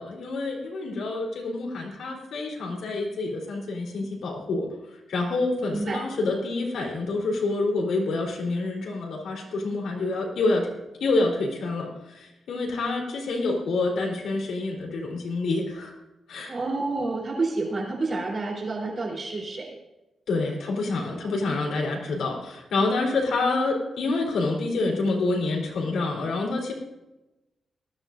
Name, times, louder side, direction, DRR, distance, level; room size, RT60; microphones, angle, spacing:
voice 1, 0.0-4.7 5.1-10.7 11.0-15.9 16.3-16.5 20.3-26.7, left 3 dB, 75° left, -1 dB, 3.6 m, -27 dB
voice 2, 5.7-6.0 16.5-19.8, right 3 dB, 35° right, -2 dB, 3.6 m, -29 dB
19.0 x 13.5 x 2.6 m, 0.98 s
wide cardioid pair, 160°, 0 cm